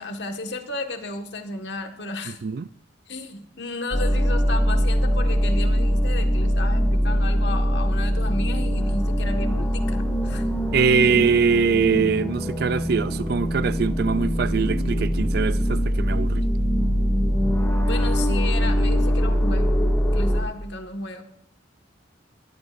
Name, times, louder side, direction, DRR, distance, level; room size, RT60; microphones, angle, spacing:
voice 1, 0.0-2.4 3.1-10.4 17.7-19.9 20.1-21.2, left 2 dB, 65° left, 1.7 m, -33 dB
sound 1, 3.9-20.4, equal, 10° left, 2.0 m, -22 dB
voice 2, 10.7-16.4, right 5 dB, 55° right, 0.4 m, -22 dB
22.0 x 14.5 x 2.6 m
head